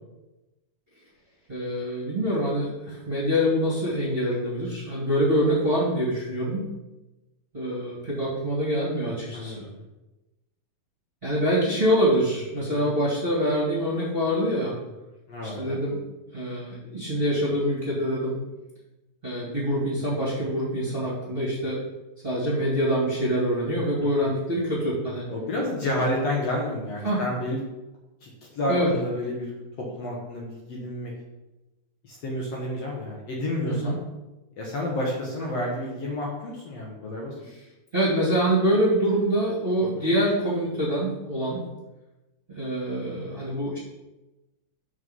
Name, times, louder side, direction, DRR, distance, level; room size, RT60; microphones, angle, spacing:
voice 1, 1.5-6.6 7.5-9.5 11.2-14.7 15.4-16.0 16.3-18.3 19.2-21.8 22.2-25.2 27.0-27.2 28.7-28.9 33.6-33.9 37.9-41.6 42.5-43.8, equal, 20° right, -7 dB, 1.7 m, -25 dB
voice 2, 9.3-9.8 12.6-12.9 15.3-15.8 24.2-24.3 25.3-27.6 28.2-29.5 29.8-31.1 32.0-34.0 34.6-37.3 40.0-40.1, left 1 dB, 60° left, -3 dB, 2.0 m, -30 dB
6.4 x 5.5 x 5.5 m, 1.0 s
omnidirectional pair, 3.8 m